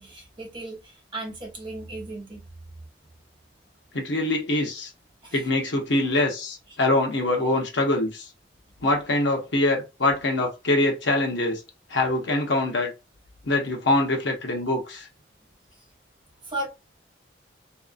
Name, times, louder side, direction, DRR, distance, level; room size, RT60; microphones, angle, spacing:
voice 1, 0.0-2.5 5.2-5.5 16.4-16.7, right 2 dB, 25° right, 0.9 m, -36 dB
voice 2, 3.9-4.9 5.3-8.3 8.8-11.6 11.9-12.9 13.5-15.1, left 2 dB, 70° left, 0.8 m, -24 dB
2.7 x 2.4 x 2.4 m
head